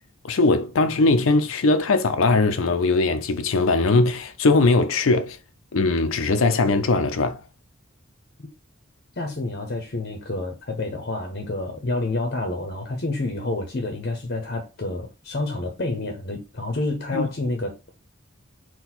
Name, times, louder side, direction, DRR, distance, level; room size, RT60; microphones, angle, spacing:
voice 1, 0.2-5.4 5.7-7.4 17.1-17.3, left 3 dB, 80° left, 0.5 m, -20 dB
voice 2, 9.2-17.9, left 2 dB, 50° left, 0.8 m, -29 dB
4.0 x 2.3 x 4.3 m
head